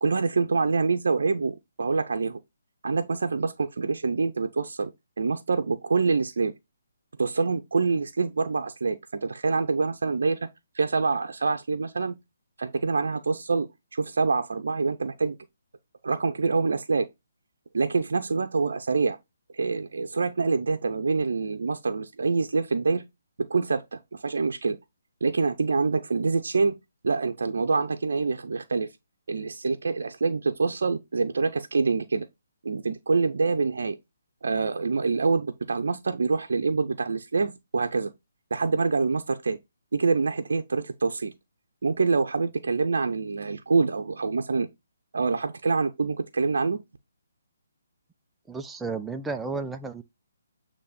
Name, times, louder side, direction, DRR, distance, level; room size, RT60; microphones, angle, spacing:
voice 1, 0.0-2.4 2.8-4.9 5.2-6.5 7.2-10.5 10.7-12.2 12.6-15.4 16.0-17.1 17.7-19.2 19.5-23.0 23.5-24.8 25.2-26.8 27.0-28.9 29.3-32.3 32.6-34.0 34.4-38.1 38.5-39.6 39.9-41.3 41.8-44.7 45.1-46.8, right 4 dB, 70° right, 0.7 m, -26 dB
voice 2, 48.5-50.0, right 4 dB, 5° right, 0.5 m, -32 dB
8.3 x 3.0 x 4.2 m
figure-of-eight pair, 145°, 0 cm